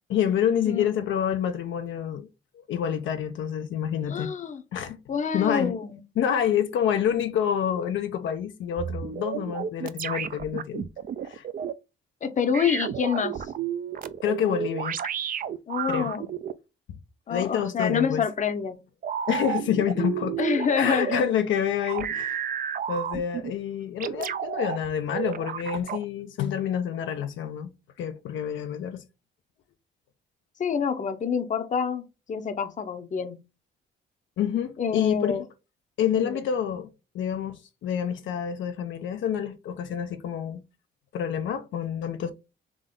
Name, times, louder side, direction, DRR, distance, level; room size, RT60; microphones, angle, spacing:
voice 1, 0.1-2.3 2.5-4.3 4.7-5.0 5.3-5.7 6.2-10.9 11.2-11.4 14.2-15.0 15.9-16.1 17.3-18.2 19.3-20.4 20.8-22.5 22.9-27.7 28.0-29.0 34.4-35.3 36.0-36.9 37.1-40.6 41.1-42.3, left 9 dB, 75° left, 0.6 m, -27 dB
voice 2, 4.1-4.6 5.1-6.0 12.2-13.4 15.7-16.3 17.3-18.8 20.4-21.3 30.6-33.4 34.8-35.4 36.2-36.4, left 6 dB, 40° left, 0.8 m, -27 dB
sound 1, 8.8-11.7 12.5-16.5 17.8-18.0 19.0-21.3 21.8-23.5 24.0-24.8 25.1-26.0, right 9 dB, 45° right, 0.4 m, -31 dB
3.7 x 3.2 x 3.7 m
cardioid pair, 90°, 20 cm